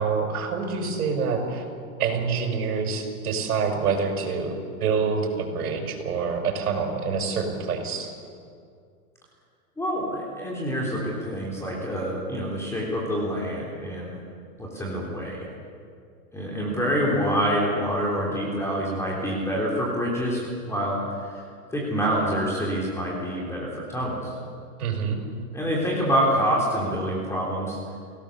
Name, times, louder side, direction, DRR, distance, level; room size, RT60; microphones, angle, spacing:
voice 1, 0.0-1.6 2.0-4.5 4.8-8.1 24.8-25.2, right 5 dB, 70° right, 2 dB, 5.7 m, -26 dB
voice 2, 9.8-14.2 14.6-15.5 16.3-21.4 21.7-24.4 25.5-28.0, equal, 5° left, -4 dB, 3.8 m, -26 dB
29.5 x 17.5 x 7.2 m, 2.2 s
hypercardioid pair, 150°, 45 cm